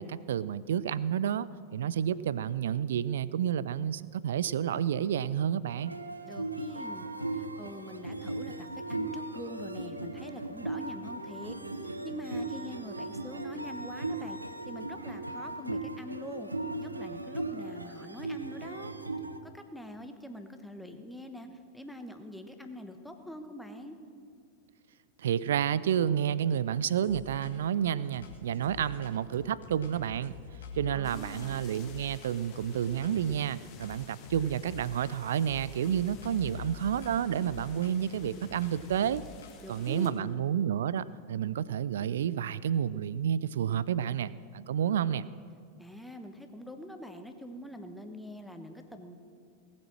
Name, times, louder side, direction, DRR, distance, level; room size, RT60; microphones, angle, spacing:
voice 1, 0.0-5.9 25.2-30.3 30.8-39.2 39.7-45.2, right 9 dB, 60° right, 18 dB, 0.3 m, -30 dB
sound 1, 5.8-19.4, right 2 dB, 85° right, 0.7 m, -37 dB
voice 2, 6.2-11.6 11.8-14.4 14.6-16.5 16.8-18.9 19.4-24.0 30.9-31.6 39.6-40.4 45.8-49.2, equal, ahead, 6 dB, 1.1 m, -44 dB
sound 2, 27.0-27.8 28.1-33.4 33.7-35.2 35.4-39.9, left 7 dB, 65° left, 1.6 m, -47 dB
sound 3, 31.0-40.1, left 7 dB, 35° left, 1.6 m, -55 dB
18.0 x 8.5 x 6.2 m, 2.4 s
figure-of-eight pair, 90°, 0 cm